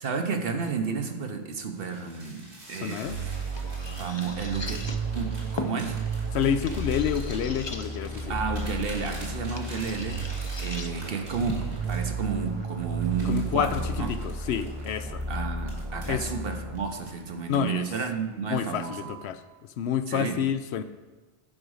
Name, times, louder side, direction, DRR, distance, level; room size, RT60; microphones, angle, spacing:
voice 1, 0.0-3.3 4.0-6.0 8.3-14.1 15.3-19.0 20.1-20.4, right 5 dB, 60° right, 5 dB, 1.1 m, -32 dB
sound 1, 1.7-12.5 13.0-16.2 16.8-17.7 18.0-18.3 18.8-19.3, right 1 dB, 75° right, 2.7 m, -47 dB
voice 2, 2.7-3.2 6.3-8.3 13.2-15.2 16.1-16.2 17.5-17.9 18.5-19.4 19.8-20.8, left 8 dB, 75° left, 11 dB, 0.8 m, -28 dB
sound 2, 2.7-13.7, left 3 dB, 30° left, 0.6 m, -42 dB
sound 3, 3.0-17.2, right 3 dB, 30° right, 0.7 m, -33 dB
10.0 x 5.1 x 6.4 m, 1.2 s
omnidirectional pair, 1.1 m